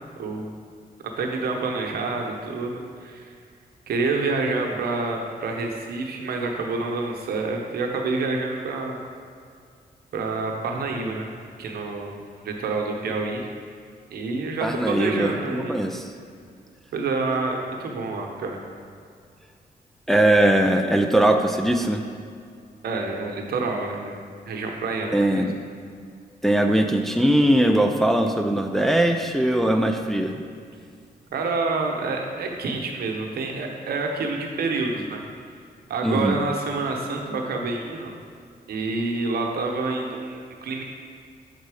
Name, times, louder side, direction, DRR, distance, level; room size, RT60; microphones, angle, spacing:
voice 1, 0.2-0.5 1.2-3.3 3.9-9.0 10.1-12.1 12.4-13.5 14.1-15.8 16.9-18.6 22.8-25.5 31.3-35.2 35.9-38.1 38.7-40.8, right 3 dB, 75° right, 2 dB, 0.9 m, -28 dB
voice 2, 14.6-16.1 20.1-22.0 25.1-25.6 26.4-30.3 36.0-36.4, right 1 dB, ahead, 4 dB, 0.5 m, -20 dB
7.4 x 4.0 x 4.9 m, 2.2 s
cardioid pair, 80°, 16 cm